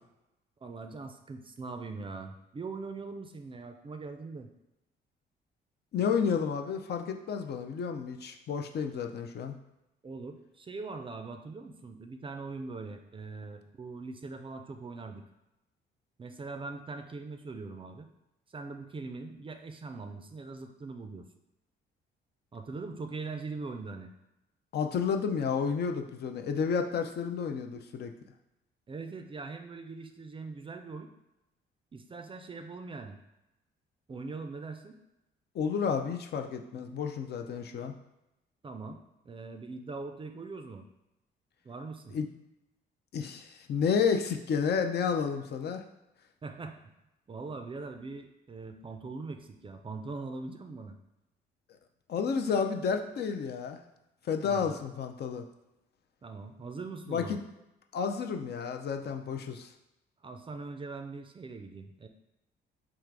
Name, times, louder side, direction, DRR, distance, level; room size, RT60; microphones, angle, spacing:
voice 1, 0.6-4.5 10.0-15.2 16.2-18.1 18.5-21.2 22.5-24.1 28.9-31.1 31.9-33.2 34.1-35.0 38.6-40.9 41.6-42.2 46.4-46.9 47.3-51.0 54.4-54.8 56.2-57.4 60.2-62.1, right 3 dB, 25° right, 6 dB, 0.4 m, -41 dB
voice 2, 5.9-9.6 24.7-28.1 35.5-37.9 42.1-42.3 43.1-45.8 52.1-53.8 54.3-55.4 57.1-57.4 57.9-59.7, left 6 dB, 55° left, 5 dB, 0.5 m, -31 dB
3.7 x 2.4 x 4.6 m, 0.93 s
cardioid pair, 90°, 20 cm